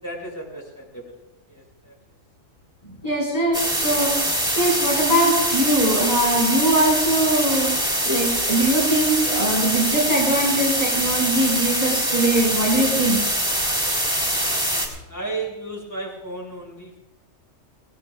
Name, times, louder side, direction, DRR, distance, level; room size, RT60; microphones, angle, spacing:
voice 1, 0.0-1.0 1.5-1.9 3.6-3.9 15.1-17.0, right 2 dB, 15° left, -3 dB, 7.0 m, -34 dB
voice 2, 3.0-4.1 4.6-7.8 8.0-13.2, right 1 dB, 30° left, -5 dB, 5.6 m, -21 dB
sound 1, 3.5-14.9, equal, 5° right, 4.4 m, -23 dB
27.5 x 18.0 x 2.5 m, 0.98 s
omnidirectional pair, 1.3 m